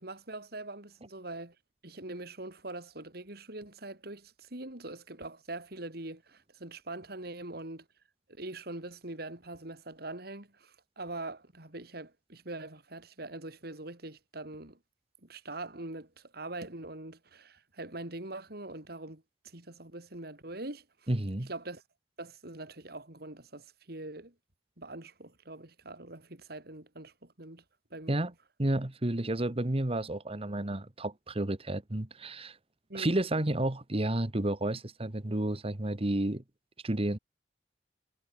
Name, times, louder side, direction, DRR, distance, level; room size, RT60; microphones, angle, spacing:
voice 1, 0.0-1.5 1.8-7.8 8.3-14.8 15.3-20.8 21.5-21.8 22.2-24.3 24.8-27.6 27.9-28.3 32.9-33.2, right 2 dB, 65° right, 3.9 m, -43 dB
voice 2, 21.1-21.5 28.1-28.3 28.6-32.6 32.9-36.4 36.8-37.2, right 1 dB, 35° right, 1.4 m, -31 dB
head